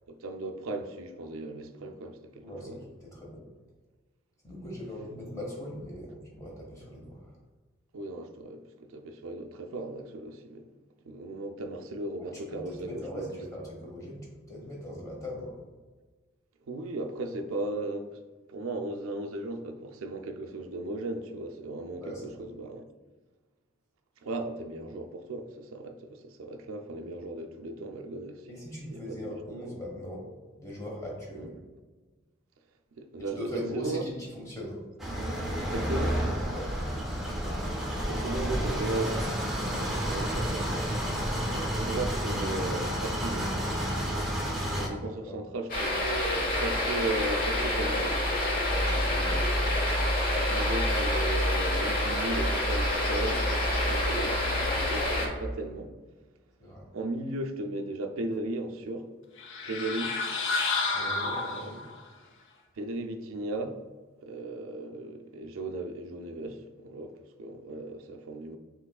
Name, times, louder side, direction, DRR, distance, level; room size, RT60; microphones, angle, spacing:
voice 1, 0.1-2.8 7.9-10.7 11.0-13.4 16.7-18.2 18.5-22.8 24.2-28.5 28.9-29.6 31.4-31.5 33.0-33.5 33.7-34.0 35.7-36.2 38.1-39.3 39.7-40.7 41.8-43.5 44.8-48.2 50.5-55.9 56.9-59.1 59.7-60.2 61.2-61.7 62.8-63.8 64.2-68.6, right 2 dB, 80° right, 0.4 m, -36 dB
voice 2, 2.4-3.4 4.4-7.4 12.3-15.5 22.0-22.4 28.5-30.2 30.6-31.6 33.2-34.8 36.5-36.7 41.4-41.8 45.0-45.4 48.7-50.6 56.6-56.9 60.9-61.8, equal, 15° left, 1.0 m, -40 dB
sound 1, 35.0-44.9, equal, ahead, 0.6 m, -30 dB
sound 2, 45.7-55.3, left 1 dB, 45° left, 1.0 m, -27 dB
sound 3, 59.4-62.0, left 3 dB, 65° left, 0.6 m, -30 dB
5.9 x 3.1 x 2.3 m
head